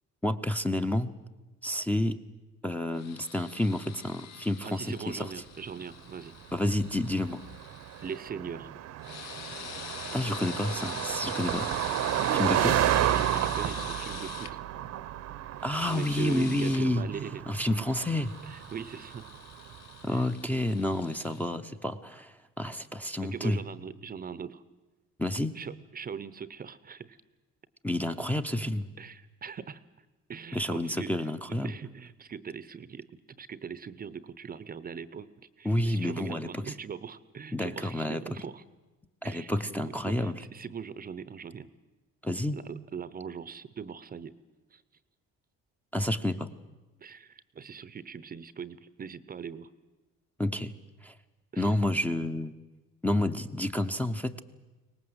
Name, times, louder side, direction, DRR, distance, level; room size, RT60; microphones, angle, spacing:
voice 1, 0.2-1.1 1.6-2.2 2.6-5.3 6.5-7.4 10.1-11.7 12.4-12.8 15.6-17.1 17.5-18.3 20.0-23.6 25.2-25.5 27.8-28.9 30.5-31.7 35.6-36.7 37.5-38.2 39.2-40.4 42.2-42.6 45.9-46.5 50.4-50.7 51.0-51.1 51.6-52.5 53.0-54.4, left 1 dB, 5° left, 3 dB, 0.7 m, -29 dB
sound 1, 2.9-8.2 9.0-14.5 15.6-16.8 17.9-21.5, left 9 dB, 65° left, 1.1 m, -44 dB
voice 2, 4.6-6.3 8.0-8.7 12.1-14.6 15.8-17.9 18.5-19.3 20.1-20.2 23.2-24.6 25.5-27.2 29.0-29.8 30.3-38.6 39.2-41.7 42.5-44.3 44.7-44.8 47.0-49.7 51.5-51.8, right 6 dB, 30° right, 16 dB, 0.7 m, -41 dB
Car passing by, 6.2-19.9, right 12 dB, 65° right, 0.9 m, -32 dB
23.5 x 19.0 x 8.0 m, 1.2 s
cardioid pair, 140°, 29 cm